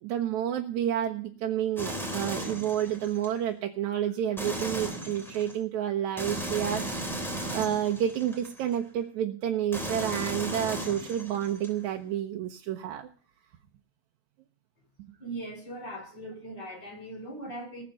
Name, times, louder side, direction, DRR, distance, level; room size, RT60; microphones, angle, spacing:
voice 1, 0.0-7.2 7.5-13.1, right 10 dB, 80° right, 2 dB, 2.3 m, -30 dB
sound 1, 1.8-3.3 4.4-5.6 6.2-8.8 9.7-11.7, right 1 dB, ahead, 2.9 m, -36 dB
voice 2, 15.2-17.8, right 1 dB, 35° left, 2 dB, 5.0 m, -40 dB
19.5 x 6.6 x 6.7 m, 0.42 s
omnidirectional pair, 3.4 m